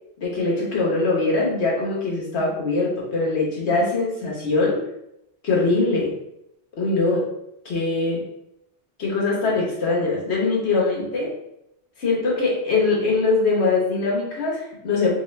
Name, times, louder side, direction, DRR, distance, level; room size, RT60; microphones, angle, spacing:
voice 1, 0.2-4.8 5.4-6.1 6.8-7.3 7.6-8.2 9.0-11.3 12.0-15.1, left 3 dB, 80° left, -4 dB, 1.3 m, -22 dB
4.4 x 2.4 x 3.2 m, 0.81 s
omnidirectional pair, 1.1 m